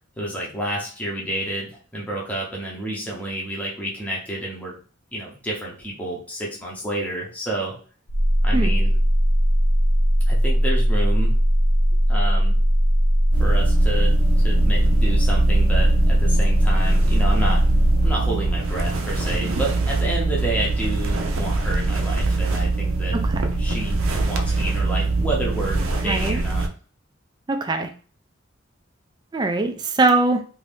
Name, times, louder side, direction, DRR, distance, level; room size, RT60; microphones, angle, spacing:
voice 1, 0.2-4.7 5.1-7.8 8.4-8.9 10.3-11.4 12.1-12.6 13.4-17.6 18.0-23.2 23.6-26.7, right 1 dB, 5° left, -4 dB, 0.7 m, -30 dB
sound 1, 8.1-18.1, equal, 75° left, 0.7 m, -19 dB
sound 2, 13.3-26.7, right 3 dB, 90° right, 0.5 m, -23 dB
voice 2, 23.1-23.5 26.1-26.4 27.5-27.9 29.3-30.4, right 2 dB, 20° right, 5 dB, 0.3 m, -22 dB
2.6 x 2.6 x 3.4 m, 0.41 s
head